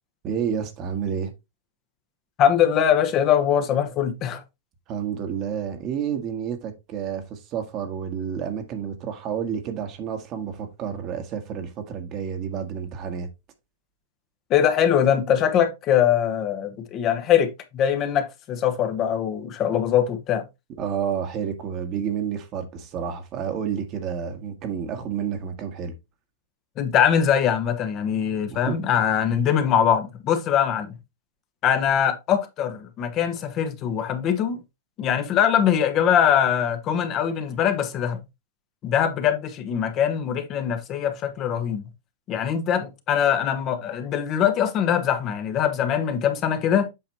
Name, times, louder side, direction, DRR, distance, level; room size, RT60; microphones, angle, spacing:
voice 1, 0.2-1.3 4.9-13.3 20.8-25.9 28.5-28.8, right 8 dB, 35° right, 1.5 m, -30 dB
voice 2, 2.4-4.4 14.5-20.5 26.8-31.0 31.6-34.6 35.0-38.2 38.8-41.8 42.3-46.9, left 9 dB, 35° left, 1.2 m, -22 dB
8.0 x 5.0 x 3.0 m
hypercardioid pair, 135°, 0 cm